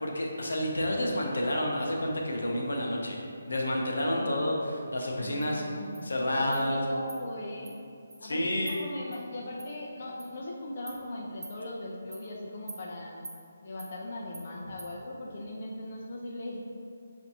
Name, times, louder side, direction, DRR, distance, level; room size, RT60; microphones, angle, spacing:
voice 1, 0.0-3.2 3.5-4.5 4.9-5.6 6.0-6.8 8.2-8.8, left 1 dB, 80° left, -1 dB, 0.7 m, -29 dB
voice 2, 3.9-4.4 5.1-7.7 8.2-13.3 13.6-16.6, left 1 dB, 50° left, -3 dB, 0.4 m, -39 dB
Insect, 5.4-5.5 5.9-6.0 6.5-6.6 7.1-7.2 7.6-7.7 8.1-8.2 8.7-8.8 9.1-9.2 9.6-9.7 10.2-10.3 10.9-11.0 11.4-11.6 12.1-12.2 12.7-12.8 13.2-13.4 13.8-13.9 14.3-14.5 14.8-14.9, right 3 dB, 65° right, 0.8 m, -45 dB
5.8 x 2.6 x 2.8 m, 2.5 s
figure-of-eight pair, 160°, 0 cm